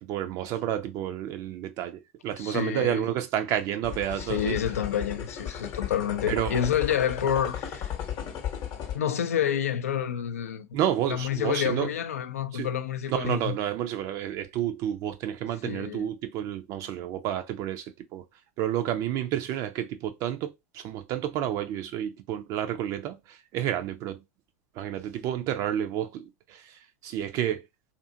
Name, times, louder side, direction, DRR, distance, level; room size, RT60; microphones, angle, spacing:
voice 1, 0.0-4.6 6.3-6.6 10.7-11.9 12.5-12.7 13.1-18.2 18.6-24.2 24.8-27.6, right 11 dB, 50° right, 0.4 m, -30 dB
voice 2, 2.4-3.1 4.2-7.9 8.9-10.7 11.1-13.6 15.6-16.1, left 9 dB, 85° left, 0.4 m, -28 dB
sound 1, 3.8-9.0, left 9 dB, 50° left, 0.8 m, -35 dB
2.6 x 2.5 x 2.6 m
hypercardioid pair, 90°, 8 cm